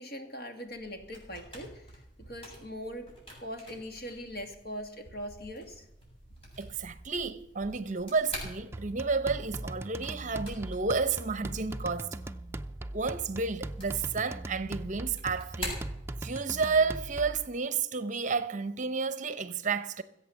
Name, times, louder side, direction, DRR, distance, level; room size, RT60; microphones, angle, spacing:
voice 1, 0.0-5.9, equal, 55° left, 2.3 m, -41 dB
sound 1, 0.7-16.7, equal, 30° left, 7.8 m, -47 dB
voice 2, 6.6-12.2 12.9-15.8 16.2-20.0, right 4 dB, 40° right, 0.8 m, -31 dB
sound 2, 8.7-17.5, right 1 dB, 15° right, 0.5 m, -40 dB
20.5 x 8.4 x 7.2 m
head